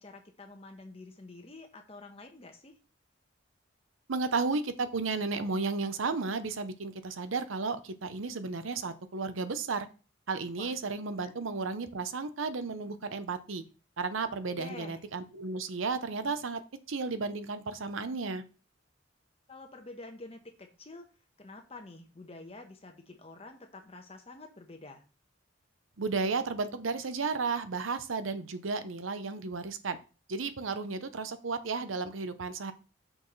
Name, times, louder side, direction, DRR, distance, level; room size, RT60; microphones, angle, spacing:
voice 1, 0.0-2.7 10.6-10.7 11.2-11.3 14.5-15.0 19.5-21.1 21.4-25.0, left 2 dB, 30° left, 4 dB, 1.1 m, -48 dB
voice 2, 4.1-9.9 10.3-13.6 14.0-16.6 16.9-18.4 26.0-30.0 30.3-32.7, right 4 dB, 80° right, 11 dB, 0.7 m, -33 dB
6.3 x 6.1 x 3.2 m, 0.33 s
head